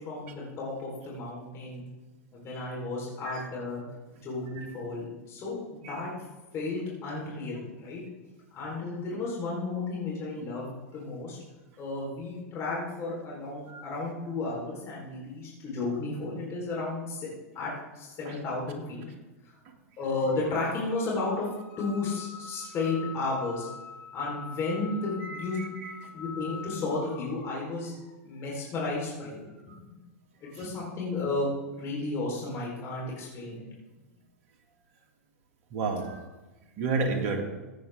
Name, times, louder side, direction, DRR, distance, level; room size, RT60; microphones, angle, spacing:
voice 1, 0.0-1.8 2.3-3.8 4.1-6.1 6.5-8.0 8.5-11.4 11.8-17.3 17.5-19.0 20.0-28.0 28.2-29.8 30.4-31.5 31.7-33.6, left 3 dB, 35° left, -4 dB, 4.3 m, -33 dB
voice 2, 25.2-25.7 35.7-36.2 36.8-37.4, right 4 dB, 50° right, 3 dB, 2.3 m, -31 dB
15.5 x 9.2 x 3.7 m, 1.1 s
hypercardioid pair, 100°, 8 cm